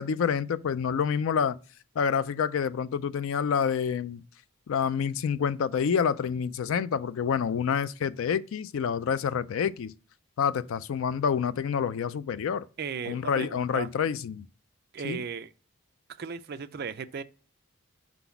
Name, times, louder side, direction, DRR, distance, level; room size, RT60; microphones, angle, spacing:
voice 1, 0.0-1.6 2.0-4.2 4.7-9.9 10.4-12.7 13.1-14.5 15.0-15.2, left 7 dB, 65° left, 0.3 m, -28 dB
voice 2, 12.8-13.9 14.9-15.5 16.2-17.2, right 6 dB, 45° right, 0.4 m, -36 dB
5.9 x 4.0 x 5.7 m
head